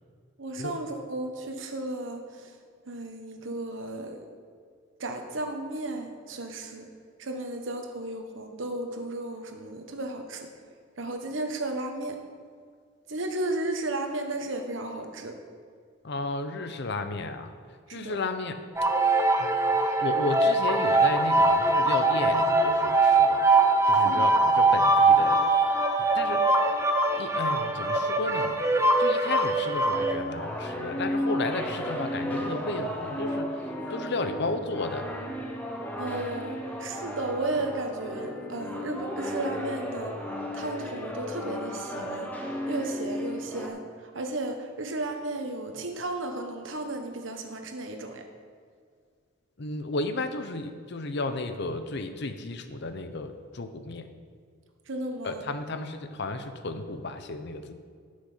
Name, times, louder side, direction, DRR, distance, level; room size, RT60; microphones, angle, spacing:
voice 1, 0.4-2.6 2.9-4.2 5.0-6.9 7.2-10.5 11.0-12.2 13.1-15.4 17.9-18.2 24.0-24.2 36.0-42.3 42.7-48.2 54.9-55.5, right 2 dB, 65° right, 4 dB, 1.2 m, -34 dB
voice 2, 16.0-17.5 17.9-18.6 19.4-19.5 20.0-23.4 23.9-25.5 26.0-26.5 27.2-28.6 29.0-33.6 33.9-35.1 49.6-54.1 55.2-57.7, left 2 dB, 55° left, 9 dB, 0.7 m, -33 dB
sound 1, 18.8-30.1, right 2 dB, 15° right, 0.6 m, -22 dB
sound 2, 29.9-43.7, equal, 10° left, 1.0 m, -34 dB
11.5 x 6.5 x 5.7 m, 2.1 s
head